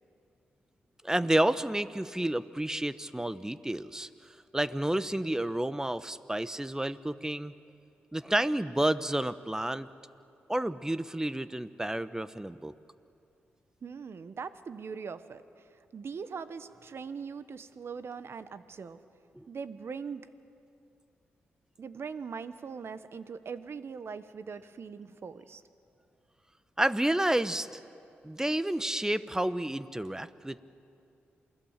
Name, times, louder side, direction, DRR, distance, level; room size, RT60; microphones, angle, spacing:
voice 1, 1.0-4.1 4.5-7.5 8.1-9.9 10.5-12.7 19.3-19.5 26.8-27.7 28.2-30.6, right 1 dB, 10° right, 14 dB, 1.0 m, -30 dB
voice 2, 13.8-15.6 15.9-19.0 19.5-20.3 21.8-25.6, right 5 dB, 60° right, 13 dB, 1.1 m, -41 dB
28.0 x 19.5 x 7.4 m, 2.6 s
supercardioid pair, 45°, 5 cm